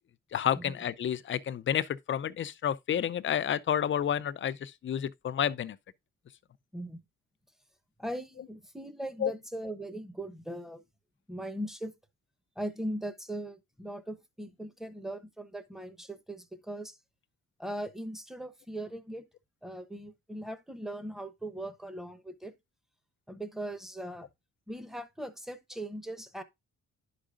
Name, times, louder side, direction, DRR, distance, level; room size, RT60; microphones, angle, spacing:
voice 1, 0.3-5.8 9.2-9.3, left 9 dB, 40° left, 0.6 m, -30 dB
voice 2, 8.0-10.8 11.3-11.9 12.6-17.0 17.6-19.2 19.6-22.5 23.3-24.3 24.7-26.4, right 1 dB, ahead, 1.0 m, -39 dB
11.0 x 5.0 x 2.5 m
cardioid pair, 90°, 30 cm